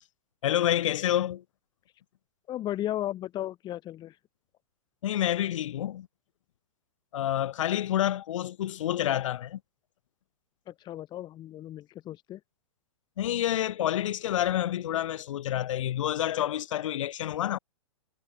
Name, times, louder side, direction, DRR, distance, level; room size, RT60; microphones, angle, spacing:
voice 1, 0.4-1.4 5.0-6.1 7.1-9.6 13.2-17.6, left 11 dB, 70° left, 0.7 m, -28 dB
voice 2, 2.5-4.2 10.7-12.4, left 13 dB, 25° left, 0.8 m, -35 dB
hypercardioid pair, 115°, 17 cm